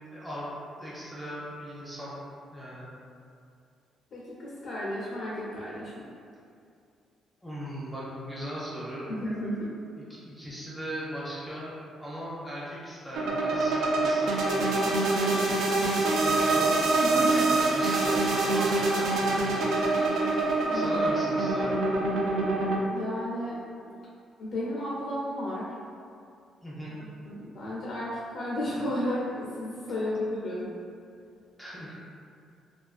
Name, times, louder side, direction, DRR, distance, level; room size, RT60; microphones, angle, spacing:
voice 1, 0.1-0.5 0.8-2.2 2.5-2.9 7.4-9.1 10.0-15.0 16.2-16.7 17.1-19.6 20.7-21.8 26.6-27.0 31.6-31.9, equal, 5° left, -8 dB, 0.6 m, -39 dB
voice 2, 4.1-6.1 9.1-9.6 17.0-17.4 20.6-21.1 22.9-23.9 24.4-25.7 27.3-30.7, left 1 dB, 60° left, -7 dB, 0.4 m, -33 dB
sound 1, 13.2-22.8, right 2 dB, 80° right, 0.3 m, -25 dB
2.3 x 2.2 x 2.3 m, 2.4 s
cardioid pair, 90°, 0 cm